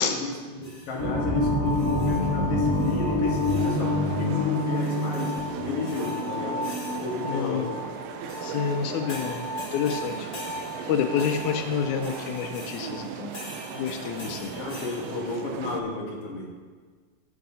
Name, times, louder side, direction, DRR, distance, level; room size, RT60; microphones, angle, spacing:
voice 1, 0.0-6.7 7.0-7.7 14.6-16.6, left 3 dB, 60° left, -1 dB, 2.3 m, -32 dB
sound 1, 0.6-1.2 1.6-2.4 2.7-3.9 4.7-7.4 8.3-15.2, left 1 dB, 35° left, 1.8 m, -45 dB
sound 2, 1.0-14.4, left 1 dB, 60° right, 0.4 m, -29 dB
sound 3, 3.6-15.8, right 8 dB, 80° right, 1.4 m, -38 dB
voice 2, 7.3-7.7 8.4-9.4 9.7-10.3 10.9-13.3 13.7-14.5, left 7 dB, 90° left, 6 dB, 2.1 m, -28 dB
16.5 x 7.7 x 2.8 m, 1.5 s
omnidirectional pair, 3.3 m